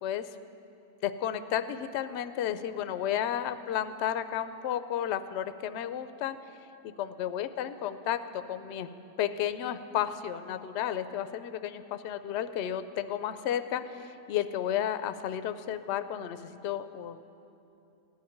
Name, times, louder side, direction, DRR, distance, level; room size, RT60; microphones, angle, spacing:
voice 1, 1.0-6.4 7.0-8.9 9.2-17.2, left 10 dB, 65° left, 11 dB, 0.7 m, -32 dB
16.0 x 5.8 x 10.0 m, 2.8 s
omnidirectional pair, 1.6 m